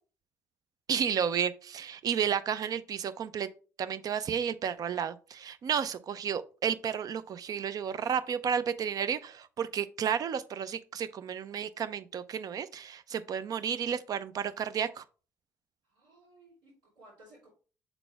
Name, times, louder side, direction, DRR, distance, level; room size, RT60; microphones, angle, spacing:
voice 1, 0.9-3.5 3.8-15.0, right 8 dB, 55° right, 0.6 m, -32 dB
voice 2, 15.8-17.5, right 1 dB, 85° right, 3.2 m, -57 dB
6.9 x 4.0 x 3.4 m
hypercardioid pair, 60°, 8 cm